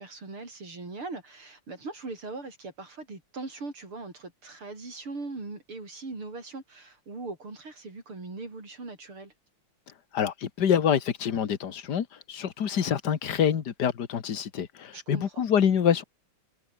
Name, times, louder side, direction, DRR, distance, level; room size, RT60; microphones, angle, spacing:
voice 1, 0.0-9.3 14.9-15.4, right 3 dB, 90° right, 6.9 m, -40 dB
voice 2, 10.1-16.0, left 8 dB, 55° left, 2.0 m, -26 dB
omnidirectional pair, 2.3 m